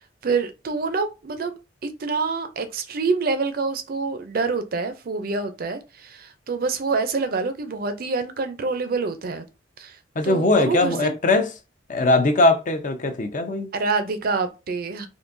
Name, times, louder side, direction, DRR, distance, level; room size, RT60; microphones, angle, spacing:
voice 1, 0.2-1.5 1.8-9.5 9.8-10.0 10.2-11.2 13.7-15.1, right 4 dB, 50° right, 0.5 m, -26 dB
voice 2, 10.2-11.4 11.9-13.7, left 2 dB, 45° left, 0.5 m, -20 dB
3.7 x 2.6 x 2.6 m
head